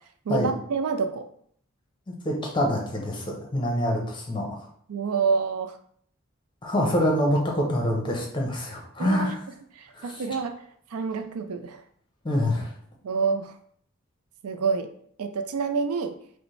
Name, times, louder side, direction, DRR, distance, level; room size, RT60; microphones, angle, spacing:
voice 1, 0.3-1.3 4.9-5.8 9.0-9.3 9.7-10.5 10.9-11.8 13.0-13.6 14.4-14.9 15.2-16.2, right 5 dB, 90° right, 7 dB, 0.4 m, -27 dB
voice 2, 2.2-4.7 6.6-9.4 9.9-10.1 12.2-12.7, left 1 dB, 20° left, 0 dB, 0.7 m, -25 dB
5.1 x 2.1 x 3.2 m, 0.63 s
head